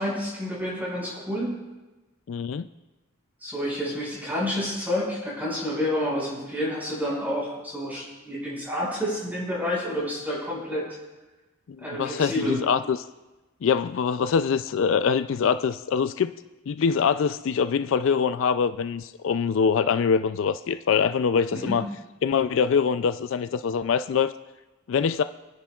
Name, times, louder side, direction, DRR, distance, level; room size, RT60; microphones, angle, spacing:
voice 1, 0.0-1.5 3.4-10.9 11.8-12.6 21.5-21.8, left 1 dB, 10° right, -6 dB, 5.5 m, -29 dB
voice 2, 2.3-2.7 11.8-13.0 13.6-16.3 16.7-21.8 22.2-24.3 24.9-25.2, left 6 dB, 60° left, 12 dB, 0.3 m, -24 dB
29.5 x 10.5 x 2.4 m, 1.1 s
head